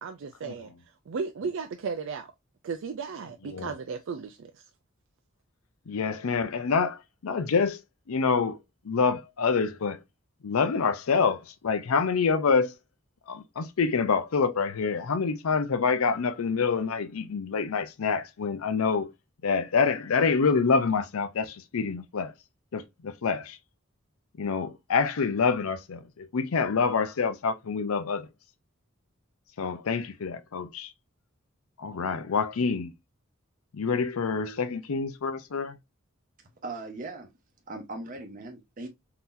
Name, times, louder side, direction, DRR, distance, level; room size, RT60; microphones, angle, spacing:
voice 1, 0.0-0.7 1.1-2.3 2.6-4.6, right 5 dB, 60° right, 0.4 m, -35 dB
voice 2, 5.9-7.8 8.1-8.6 8.8-10.0 10.4-12.7 13.3-19.1 19.4-22.3 22.7-23.6 24.4-28.3 29.6-30.9 31.8-32.9 33.7-35.8, left 5 dB, 80° left, 0.5 m, -26 dB
voice 3, 36.6-37.3 37.7-38.9, right 2 dB, 40° right, 0.8 m, -39 dB
3.7 x 2.8 x 2.5 m
head